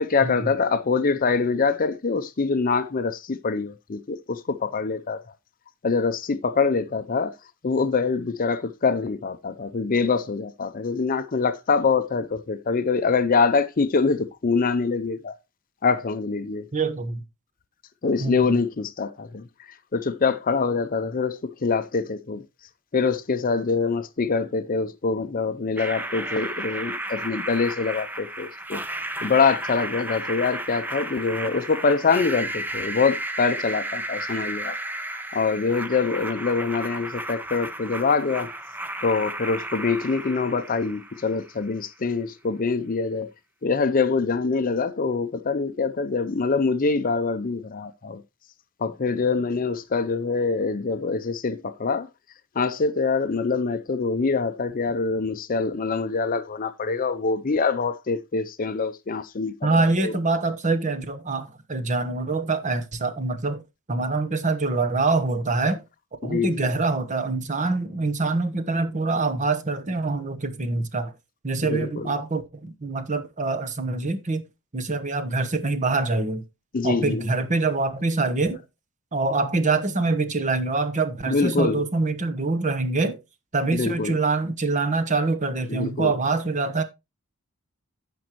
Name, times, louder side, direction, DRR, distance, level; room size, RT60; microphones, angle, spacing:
voice 1, 0.0-5.2 5.8-7.3 7.6-15.3 15.8-16.7 18.0-19.4 19.9-22.4 22.9-28.8 29.2-34.8 35.3-38.5 39.0-43.3 43.6-48.2 48.8-52.1 52.6-60.1 66.2-66.7 71.7-72.1 76.7-77.2 81.3-81.8 83.7-84.2 85.7-86.1, left 4 dB, 40° left, 0.5 m, -24 dB
voice 2, 16.7-17.2 18.2-18.5 59.6-63.6 63.9-65.8 66.2-71.1 71.4-74.4 74.7-76.4 76.8-78.6 79.1-83.2 83.5-86.8, right 3 dB, 35° right, 1.1 m, -25 dB
sound 1, 25.8-41.7, right 1 dB, 10° right, 0.7 m, -33 dB
15.0 x 5.3 x 3.0 m
head